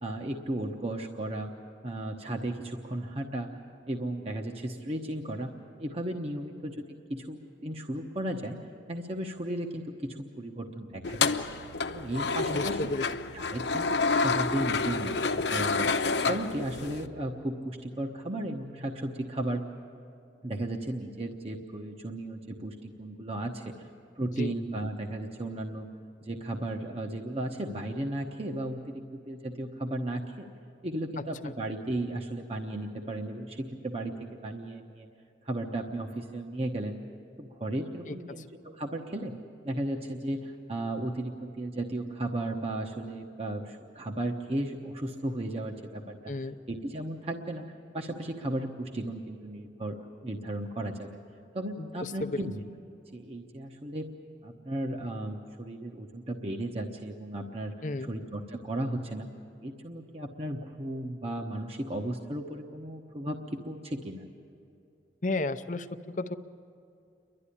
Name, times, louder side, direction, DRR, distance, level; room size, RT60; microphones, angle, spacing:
voice 1, 0.0-1.5 1.8-3.5 3.9-8.6 8.9-11.3 11.9-12.9 13.3-15.9 16.3-19.7 20.4-23.9 24.2-25.9 26.2-30.5 30.8-34.1 34.4-35.1 35.4-37.0 37.4-39.3 39.6-46.3 46.7-47.6 47.9-51.2 51.5-52.6 53.1-54.1 54.4-57.7 58.1-59.3 59.6-64.2, right 1 dB, 35° right, 2 dB, 1.0 m, -35 dB
sound 1, 11.0-17.1, left 4 dB, 80° left, 0.9 m, -29 dB
voice 2, 12.5-13.1 24.2-24.5 31.4-31.6 38.1-38.4 46.3-46.6 51.8-52.4 57.8-58.1 65.2-66.4, left 2 dB, 45° left, 10 dB, 0.7 m, -33 dB
29.5 x 12.0 x 10.0 m, 2.6 s
head